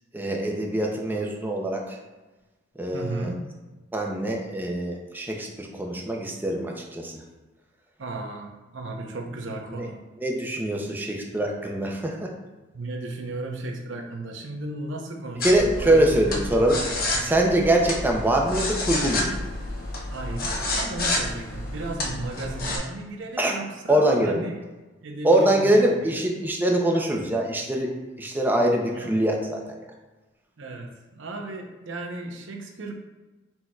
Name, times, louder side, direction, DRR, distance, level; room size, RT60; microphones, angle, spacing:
voice 1, 0.1-1.8 2.8-3.3 3.9-7.2 9.8-9.9 10.2-12.3 15.4-16.8 17.2-19.3 23.4-23.5 23.9-24.4 25.2-29.8, right 1 dB, 10° right, 1 dB, 0.6 m, -23 dB
voice 2, 2.9-3.5 8.0-10.0 12.7-16.5 17.1-17.3 20.1-24.5 25.0-26.3 28.9-29.2 30.6-32.9, right 2 dB, 70° right, 2 dB, 0.7 m, -35 dB
sound 1, 15.4-22.8, left 2 dB, 50° left, 0.8 m, -29 dB
4.5 x 4.4 x 2.3 m, 1.2 s
head